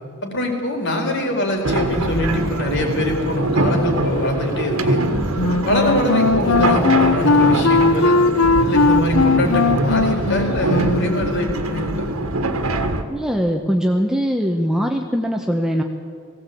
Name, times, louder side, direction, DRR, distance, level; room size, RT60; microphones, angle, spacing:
voice 1, 0.2-5.1 5.6-8.2 8.6-12.1, left 1 dB, 55° left, 2 dB, 4.3 m, -23 dB
sound 1, 1.6-13.0, right 2 dB, 80° right, 1.7 m, -23 dB
Wind instrument woodwind instrument, 5.3-11.2, left 3 dB, 90° left, 0.9 m, -18 dB
voice 2, 13.1-15.8, equal, 5° right, 2 dB, 1.0 m, -21 dB
19.0 x 16.5 x 8.5 m, 2.3 s
head